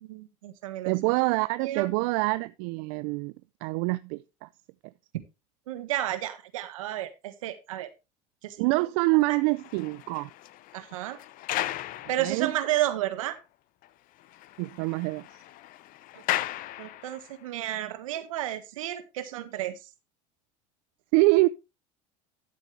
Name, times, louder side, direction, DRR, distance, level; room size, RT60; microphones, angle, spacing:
voice 1, 0.0-1.1 1.6-1.9 5.7-7.9 8.4-8.6 9.3-9.4 10.7-11.2 12.1-13.4 16.1-16.2 16.8-19.7, right 13 dB, 85° right, 1.6 m, -32 dB
voice 2, 0.9-3.3 3.6-4.5 8.6-10.3 12.2-12.5 14.6-15.2 21.1-21.5, right 23 dB, 70° right, 0.5 m, -25 dB
sound 1, 9.3-12.8 13.3-13.4 13.8-13.9 14.2-17.4, left 14 dB, 55° left, 0.7 m, -36 dB
12.5 x 7.7 x 3.3 m
hypercardioid pair, 85°, 17 cm